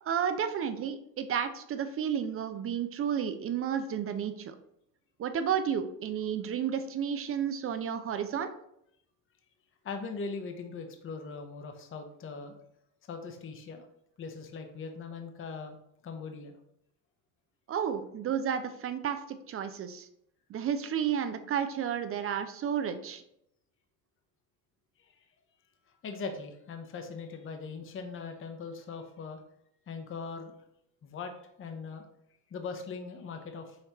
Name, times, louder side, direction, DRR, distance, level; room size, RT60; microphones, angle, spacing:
voice 1, 0.0-4.5 5.2-8.5 17.7-20.1 20.5-23.2, right 8 dB, 30° right, 9 dB, 0.4 m, -32 dB
voice 2, 9.8-12.6 13.1-13.8 14.2-15.8 16.0-16.6 25.0-25.1 26.0-29.4 29.9-30.5 31.0-32.0 32.5-33.8, left 4 dB, 25° left, 5 dB, 0.7 m, -40 dB
5.7 x 3.2 x 2.9 m, 0.75 s
hypercardioid pair, 70°, 47 cm